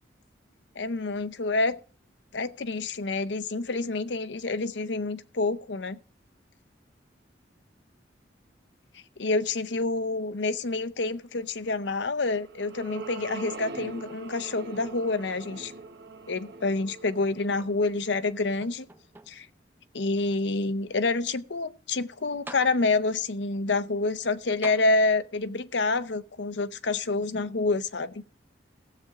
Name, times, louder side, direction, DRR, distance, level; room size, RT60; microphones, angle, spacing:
voice 1, 0.8-1.8 2.3-6.0 9.2-15.7 16.3-18.9 19.3-19.5 19.9-28.2, left 3 dB, 70° left, 0.7 m, -28 dB
sound 1, 12.0-18.6, right 3 dB, 60° right, 1.0 m, -42 dB
sound 2, 17.5-18.2 18.6-19.6 20.3-20.4 22.0-22.1 22.5-23.2 24.6-25.5 26.5-26.6, right 2 dB, 10° right, 0.6 m, -47 dB
17.0 x 7.7 x 3.6 m
head